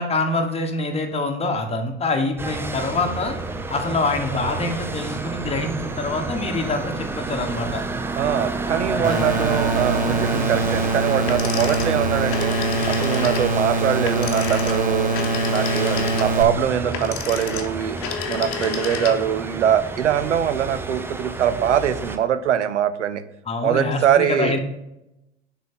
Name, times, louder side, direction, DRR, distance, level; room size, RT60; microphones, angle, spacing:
voice 1, 0.0-3.3 3.7-7.8 8.9-9.2 23.5-24.6, left 3 dB, 15° left, 4 dB, 1.1 m, -25 dB
sound 1, 2.4-22.2, right 3 dB, 5° right, 0.3 m, -30 dB
voice 2, 8.2-12.6 12.9-15.2 15.5-18.0 18.3-23.2 23.6-24.6, right 9 dB, 80° right, 12 dB, 0.5 m, -22 dB
sound 2, 9.0-16.4, right 3 dB, 25° right, 0.9 m, -23 dB
sound 3, 11.2-19.4, left 8 dB, 40° left, 0.9 m, -31 dB
6.3 x 3.9 x 4.3 m, 0.89 s
figure-of-eight pair, 70°, 35 cm